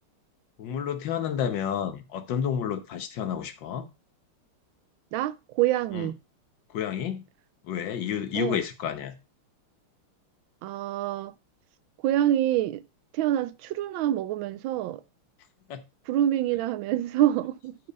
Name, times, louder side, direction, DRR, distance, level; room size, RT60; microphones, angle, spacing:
voice 1, 0.6-3.9 5.9-6.1 6.7-7.2 7.6-9.1 15.7-15.8, left 8 dB, 65° left, 1.6 m, -30 dB
voice 2, 5.1-6.2 8.3-8.6 10.6-11.3 12.0-12.8 13.1-15.0 16.1-17.8, right 12 dB, 75° right, 1.3 m, -26 dB
8.5 x 4.4 x 5.3 m
omnidirectional pair, 2.4 m